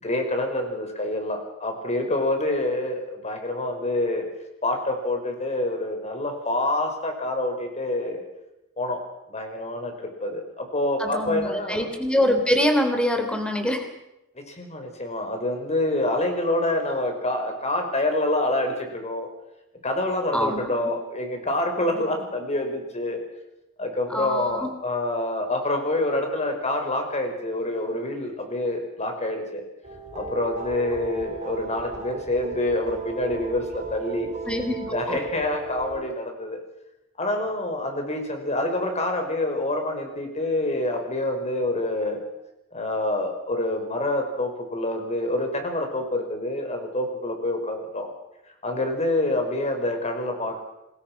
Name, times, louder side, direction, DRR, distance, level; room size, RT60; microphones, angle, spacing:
voice 1, 0.0-4.3 4.6-8.2 8.8-9.0 9.3-11.9 14.3-19.3 19.8-23.2 23.8-29.6 30.1-34.3 34.9-36.6 37.2-42.2 42.7-48.1 48.6-50.6, left 1 dB, 30° left, 4 dB, 5.1 m, -27 dB
voice 2, 11.0-13.9 20.3-20.7 24.1-24.7 34.5-35.2, left 1 dB, 5° left, 6 dB, 3.5 m, -24 dB
sound 1, 29.8-36.0, right 4 dB, 35° right, 3.7 m, -35 dB
27.5 x 21.0 x 6.0 m, 0.92 s
head